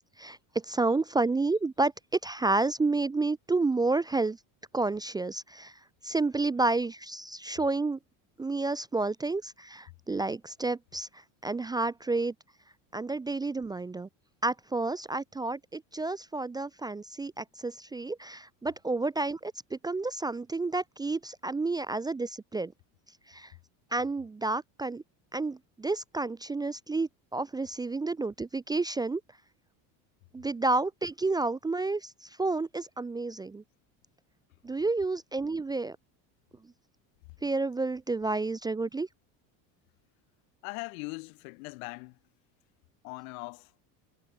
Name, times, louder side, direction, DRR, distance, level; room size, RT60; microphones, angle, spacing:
voice 1, 0.7-1.9 2.2-4.4 4.7-5.7 6.0-8.0 8.4-11.1 11.4-12.3 12.9-14.1 14.4-22.7 23.3-23.5 23.9-25.0 25.3-29.2 30.3-33.6 34.6-36.0 37.4-39.1, right 3 dB, 10° right, 0.5 m, -30 dB
voice 2, 40.6-42.1 43.0-43.7, left 29 dB, 85° left, 2.7 m, -40 dB
cardioid pair, 140°, 41 cm